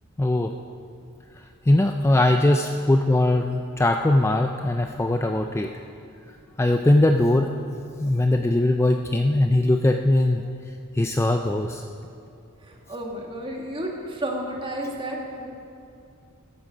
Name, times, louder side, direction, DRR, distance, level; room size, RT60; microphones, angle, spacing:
voice 1, 0.2-0.5 1.4-5.7 6.6-7.5 8.0-10.4 10.9-11.8, left 1 dB, 10° left, 5 dB, 0.3 m, -20 dB
voice 2, 12.6-15.5, right 1 dB, 25° right, 0 dB, 1.7 m, -32 dB
14.0 x 11.0 x 5.2 m, 2.5 s
head